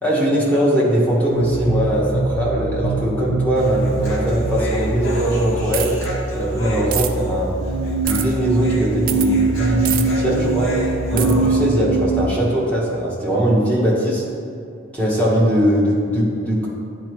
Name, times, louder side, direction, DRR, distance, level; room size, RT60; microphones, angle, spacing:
voice 1, 0.0-6.0 6.3-7.6 8.0-10.7 11.1-14.2 14.9-16.7, equal, 5° left, -7 dB, 1.2 m, -20 dB
sound 1, 1.3-12.2, right 3 dB, 55° left, 0.6 m, -23 dB
Human voice, 3.6-11.6, equal, 80° left, 1.6 m, -29 dB
sound 2, 5.7-6.1 6.9-7.1 8.1-8.3 9.1-9.3 9.9-10.0 11.2-11.3, right 11 dB, 40° right, 0.3 m, -25 dB
10.0 x 4.3 x 3.2 m, 2.4 s
head